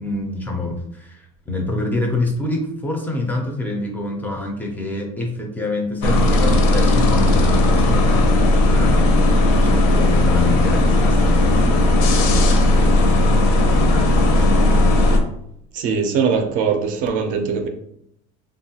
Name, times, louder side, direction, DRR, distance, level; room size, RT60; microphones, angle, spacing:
voice 1, 0.0-8.3 8.7-9.3 9.6-14.9, left 3 dB, 10° left, 1 dB, 0.4 m, -27 dB
sound 1, 6.0-15.2, left 1 dB, 65° left, 0.5 m, -16 dB
voice 2, 15.7-17.7, right 6 dB, 50° right, 5 dB, 0.4 m, -21 dB
2.9 x 2.2 x 2.7 m, 0.74 s
cardioid pair, 150°, 17 cm